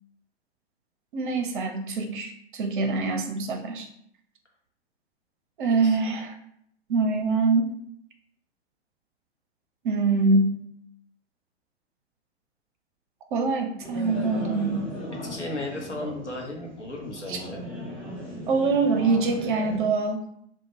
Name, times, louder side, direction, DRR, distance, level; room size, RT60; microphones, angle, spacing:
voice 1, 1.1-3.9 5.6-6.3 6.9-7.7 9.8-10.6 13.3-14.8 17.3-17.4 18.5-20.2, right 3 dB, 50° right, 5 dB, 0.5 m, -24 dB
voice 2, 5.6-6.0 15.1-17.6, left 2 dB, 90° left, 0 dB, 0.7 m, -35 dB
sound 1, 13.8-19.9, equal, 5° left, 0.4 m, -37 dB
2.1 x 2.0 x 2.9 m, 0.69 s
figure-of-eight pair, 105°, 34 cm